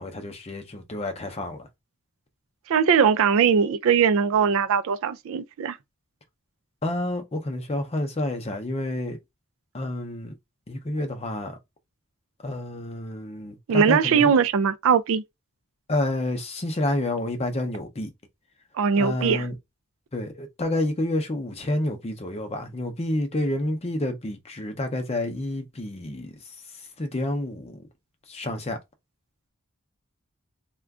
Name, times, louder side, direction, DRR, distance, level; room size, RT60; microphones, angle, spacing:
voice 1, 0.0-1.7 6.8-9.2 9.7-10.3 10.7-11.6 12.4-14.3 15.9-18.1 19.0-19.6 20.1-26.4 27.0-27.8 28.3-28.8, left 1 dB, 30° left, 0.6 m, -29 dB
voice 2, 2.7-5.8 13.7-15.2 18.7-19.5, right 6 dB, 65° right, 0.4 m, -20 dB
2.4 x 2.2 x 3.5 m
head